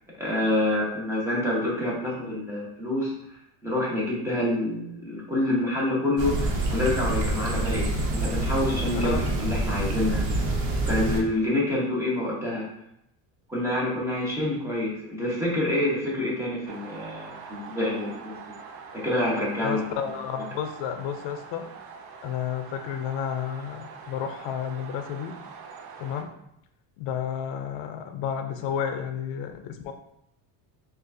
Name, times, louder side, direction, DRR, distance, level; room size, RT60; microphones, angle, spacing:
voice 1, 0.2-3.1 3.6-10.2 10.9-12.7 13.5-18.4 18.9-19.9, left 1 dB, 5° right, -5 dB, 0.9 m, -27 dB
sound 1, 6.2-11.2, right 1 dB, 75° right, 1.1 m, -27 dB
voice 2, 8.9-9.2 19.6-21.7 22.2-25.3 26.0-26.3 27.0-29.9, left 8 dB, 70° left, 7 dB, 0.6 m, -31 dB
sound 2, 16.7-26.2, right 5 dB, 55° right, 0.6 m, -44 dB
6.2 x 2.5 x 2.6 m, 0.78 s
cardioid pair, 150°, 45 cm